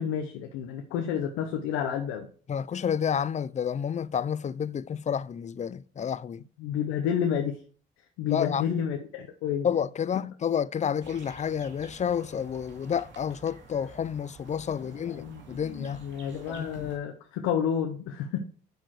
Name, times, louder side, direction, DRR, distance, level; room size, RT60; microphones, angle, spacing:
voice 1, 0.0-2.3 6.6-7.6 8.2-9.7 14.8-18.4, left 8 dB, 85° left, 0.8 m, -30 dB
voice 2, 2.5-6.4 8.2-8.7 9.6-16.0 16.5-16.9, left 8 dB, 35° left, 0.4 m, -30 dB
sound 1, 11.0-17.0, right 4 dB, 65° right, 2.2 m, -50 dB
6.8 x 6.3 x 4.8 m
supercardioid pair, 60°, 21 cm